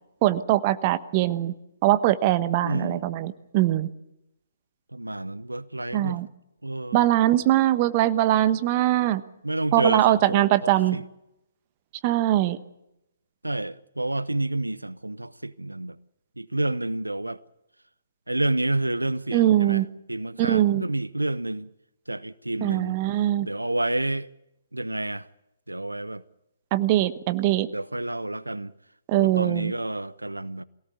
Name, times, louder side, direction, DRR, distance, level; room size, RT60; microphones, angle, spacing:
voice 1, 0.2-1.5 1.8-3.9 5.9-6.3 6.9-9.2 9.7-11.0 12.0-12.6 19.3-19.9 20.4-20.8 22.6-23.5 26.7-27.7 29.1-29.7, right 14 dB, 30° right, 1.1 m, -22 dB
voice 2, 2.6-3.0 4.9-6.2 6.6-7.0 9.4-11.0 13.4-16.0 16.4-17.4 18.3-19.8 20.1-21.7 22.1-23.0 23.4-24.3 24.7-25.3 25.7-26.2 27.7-28.7 29.2-30.6, right 2 dB, 85° right, 0.7 m, -29 dB
23.0 x 17.0 x 8.3 m
figure-of-eight pair, 135°, 0 cm